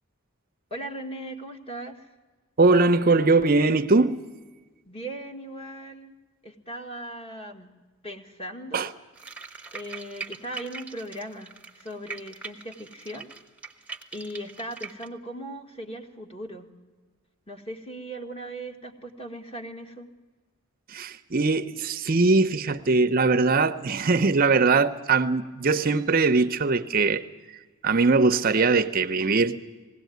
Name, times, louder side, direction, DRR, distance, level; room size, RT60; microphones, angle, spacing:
voice 1, 0.7-2.1 4.9-6.2 6.4-7.7 8.0-8.9 9.7-13.3 14.1-16.7 17.5-20.1, right 1 dB, 25° left, 1.8 m, -38 dB
voice 2, 2.6-4.2 8.7-8.9 20.9-27.2 27.8-29.6, right 3 dB, 45° right, 0.6 m, -21 dB
sound 1, 9.1-15.1, right 5 dB, 5° right, 1.0 m, -41 dB
20.5 x 17.0 x 9.2 m
head